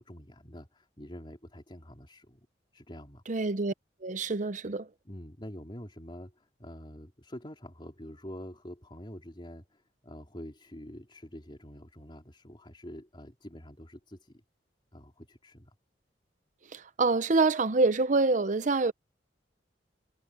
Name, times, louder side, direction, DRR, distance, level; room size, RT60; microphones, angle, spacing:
voice 1, 0.0-2.4 2.7-3.2 5.1-14.3 14.9-15.7, equal, 30° left, 3.7 m, -46 dB
voice 2, 3.3-3.7 4.0-4.9 16.7-18.9, right 3 dB, 45° right, 0.7 m, -26 dB
head